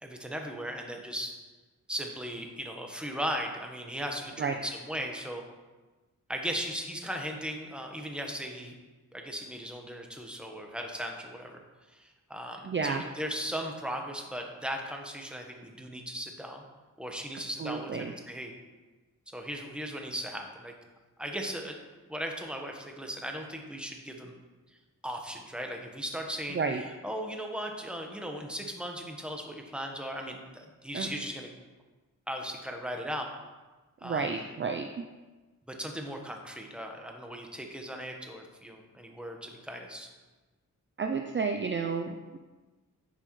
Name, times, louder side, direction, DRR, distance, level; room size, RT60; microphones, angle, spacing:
voice 1, 0.0-1.3 1.9-5.4 6.3-8.7 9.1-11.6 11.9-16.6 17.0-18.5 19.3-20.7 21.2-21.8 22.1-24.3 25.0-26.6 27.0-31.5 32.3-33.3 34.0-34.5 35.7-40.1, equal, 5° right, 2 dB, 1.3 m, -37 dB
voice 2, 12.6-13.0 17.6-18.1 26.5-26.8 30.9-31.1 34.0-35.0 41.0-42.4, right 5 dB, 35° right, 5 dB, 0.5 m, -31 dB
10.5 x 6.4 x 3.2 m, 1.2 s
cardioid pair, 75°, 34 cm